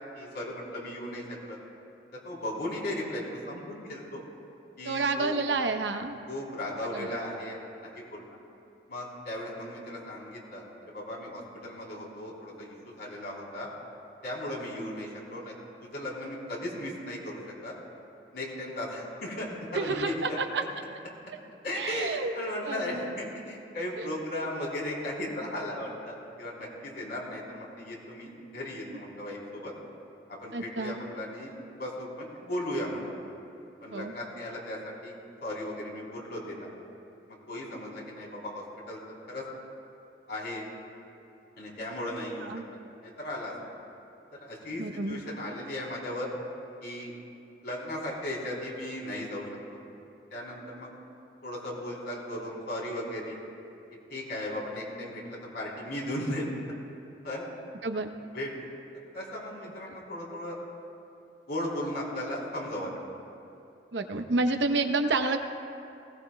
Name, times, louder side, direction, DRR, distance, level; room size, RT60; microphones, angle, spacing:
voice 1, 0.2-1.6 2.2-4.2 4.8-5.4 6.3-7.6 8.0-8.2 8.9-13.7 14.2-15.5 15.8-17.8 18.3-20.4 21.6-29.7 30.3-31.5 31.8-33.0 33.8-35.2 35.4-36.7 37.5-39.0 39.3-39.4 40.3-40.7 41.6-42.5 43.0-43.5 44.4-46.3 46.8-47.1 47.6-49.4 49.7-49.8 50.3-50.9 51.4-53.4 54.1-56.5 57.2-57.5 58.3-58.7 59.1-60.6 61.5-62.9, left 1 dB, 65° left, -4 dB, 3.6 m, -36 dB
voice 2, 4.8-6.2 6.9-7.1 19.7-20.6 21.7-22.3 22.6-23.1 24.0-24.1 30.5-31.0 33.9-34.1 42.5-42.6 44.8-45.2 57.8-58.1 59.9-60.0 63.9-65.4, right 3 dB, 90° right, 7 dB, 0.9 m, -29 dB
19.5 x 18.0 x 2.3 m, 2.6 s
head